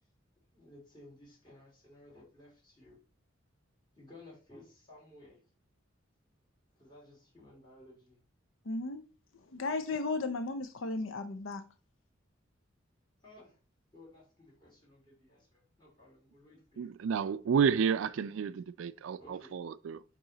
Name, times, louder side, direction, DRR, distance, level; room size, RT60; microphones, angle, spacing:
voice 1, 0.5-3.0 3.9-5.4 6.8-8.2 13.2-13.6 13.9-16.9 19.2-19.6, left 1 dB, 20° left, 3.2 m, -56 dB
voice 2, 8.7-9.0 9.5-11.7, left 3 dB, 70° left, 0.6 m, -35 dB
voice 3, 16.8-20.0, right 6 dB, 75° right, 0.3 m, -31 dB
8.7 x 3.0 x 3.9 m
head